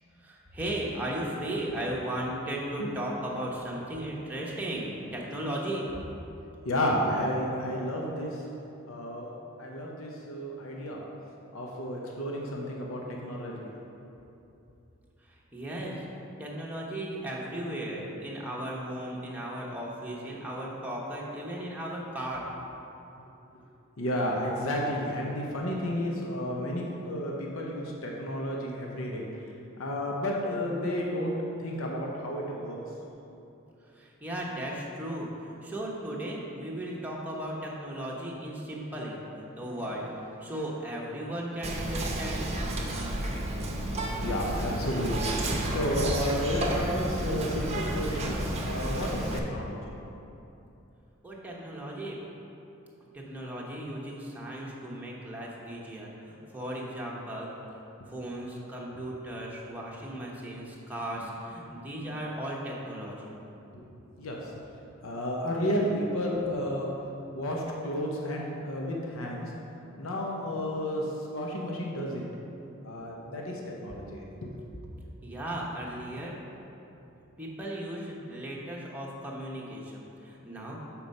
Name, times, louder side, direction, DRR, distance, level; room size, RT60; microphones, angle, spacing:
voice 1, 0.2-5.9 15.3-16.0 16.4-22.5 33.9-42.5 51.2-52.2 53.1-57.5 58.1-63.3 75.2-76.3 77.4-80.8, right 1 dB, 10° right, -4 dB, 0.9 m, -36 dB
voice 2, 6.6-8.4 8.8-9.3 9.6-11.0 11.5-13.7 24.0-29.2 29.8-32.8 44.2-45.4 45.6-49.9 63.7-64.6 65.0-66.9 67.3-69.5 70.0-72.2 72.8-74.5, equal, 90° left, -1 dB, 0.8 m, -32 dB
Whispering, 41.6-49.4, right 1 dB, 30° right, 0.7 m, -31 dB
7.0 x 4.5 x 5.3 m, 2.9 s
head